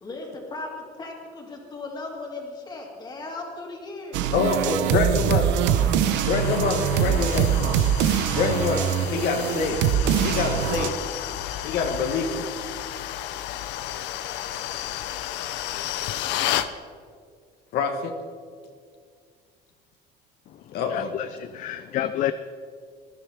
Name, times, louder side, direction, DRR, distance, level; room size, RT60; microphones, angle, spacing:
voice 1, 0.0-4.8 5.5-6.1, left 2 dB, 25° left, 0 dB, 2.6 m, -38 dB
sound 1, 4.1-10.9, right 9 dB, 80° right, 0.8 m, -23 dB
voice 2, 4.3-5.5 6.2-7.5 8.3-9.8 10.2-11.0 11.6-12.5 14.5-14.7 15.4-15.5 17.7-18.1 20.7-21.1, left 5 dB, 60° left, 4 dB, 1.5 m, -26 dB
sound 2, 5.9-16.7, left 12 dB, 85° left, 0.8 m, -32 dB
voice 3, 20.5-22.3, left 12 dB, 45° left, 11 dB, 0.5 m, -30 dB
19.5 x 13.0 x 3.6 m, 2.1 s
cardioid pair, 165°, 18 cm